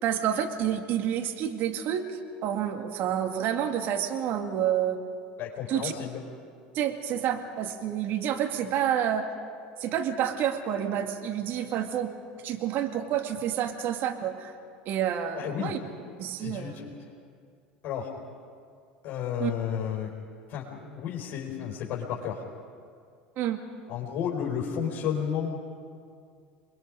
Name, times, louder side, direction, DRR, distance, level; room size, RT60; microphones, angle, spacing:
voice 1, 0.0-2.1 2.4-5.0 5.7-5.9 6.7-9.3 9.8-12.1 12.4-14.5 14.9-15.8 16.2-16.8 19.4-19.5 23.4-23.6, right 10 dB, 50° right, 5 dB, 2.2 m, -29 dB
voice 2, 5.4-6.2 15.3-15.7 16.4-16.9 17.8-18.1 19.0-20.1 20.5-22.4 23.9-25.6, left 8 dB, 50° left, -3 dB, 4.4 m, -32 dB
28.5 x 21.5 x 5.2 m, 2.3 s
hypercardioid pair, 75°, 4 cm